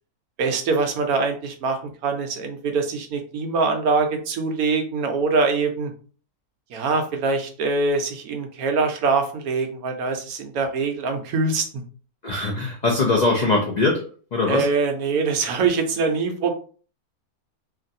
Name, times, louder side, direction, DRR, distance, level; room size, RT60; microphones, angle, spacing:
voice 1, 0.4-5.9 6.7-11.8 14.5-16.5, right 4 dB, 75° right, 4 dB, 1.1 m, -23 dB
voice 2, 12.2-14.0 14.3-14.7, left 3 dB, 75° left, -1 dB, 0.4 m, -21 dB
3.0 x 2.6 x 2.6 m, 0.40 s
omnidirectional pair, 1.6 m